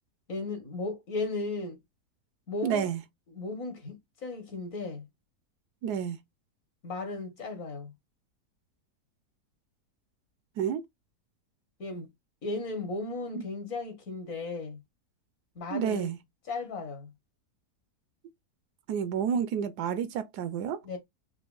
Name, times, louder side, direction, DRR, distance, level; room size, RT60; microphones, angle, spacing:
voice 1, 0.3-1.8 2.5-2.8 3.3-5.1 6.8-7.9 11.8-12.1 12.4-14.8 15.5-16.1 16.5-17.1 20.8-21.0, left 3 dB, 60° left, 1.4 m, -35 dB
voice 2, 2.6-3.0 5.8-6.2 10.6-10.8 13.3-13.4 15.7-16.2 18.9-20.8, right 8 dB, 80° right, 1.1 m, -30 dB
4.6 x 2.2 x 2.2 m
omnidirectional pair, 1.7 m